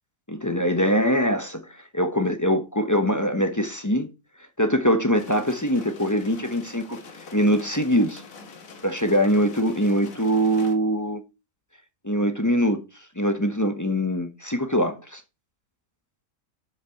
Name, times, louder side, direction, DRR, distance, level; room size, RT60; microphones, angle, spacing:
voice 1, 0.3-4.1 4.6-7.0 7.3-8.2 8.8-11.2 12.0-12.8 13.2-15.2, equal, 15° left, 0.9 m, -23 dB
sound 1, 5.1-10.7, left 4 dB, 80° left, 1.9 m, -45 dB
7.4 x 6.6 x 4.5 m
omnidirectional pair, 1.4 m